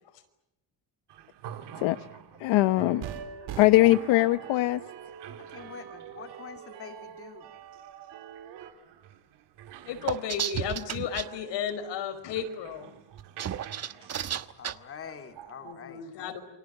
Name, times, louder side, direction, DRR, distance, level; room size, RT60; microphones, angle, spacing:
sound 1, 1.1-15.7, right 10 dB, 65° right, 2.9 m, -49 dB
voice 1, 2.4-3.0 3.6-4.8, left 17 dB, 90° left, 11 dB, 1.1 m, -21 dB
sound 2, 2.8-8.7, right 9 dB, 80° right, 4.5 m, -43 dB
voice 2, 5.4-7.5 14.6-16.4, left 7 dB, 30° left, 6 dB, 2.8 m, -45 dB
voice 3, 9.9-12.9 15.6-16.4, left 8 dB, 70° left, 8 dB, 5.1 m, -33 dB
sound 3, 10.1-11.2 13.2-14.7, right 9 dB, 35° right, 1.1 m, -32 dB
29.0 x 25.5 x 7.5 m, 0.88 s
cardioid pair, 175°, 45 cm